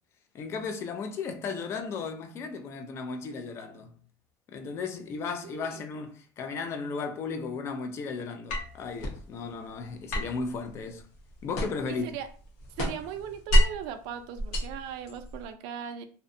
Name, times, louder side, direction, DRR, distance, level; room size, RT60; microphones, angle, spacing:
voice 1, 0.3-3.9 4.5-11.1 11.4-12.1, left 4 dB, 30° left, 0.4 m, -35 dB
voice 2, 5.4-5.9 11.9-12.3 12.8-16.0, right 8 dB, 60° right, 0.4 m, -38 dB
sound 1, 8.5-9.2 10.1-12.0 12.3-13.9 14.4-15.4, equal, 70° left, 0.8 m, -27 dB
2.6 x 2.1 x 2.6 m
cardioid pair, 150°, 8 cm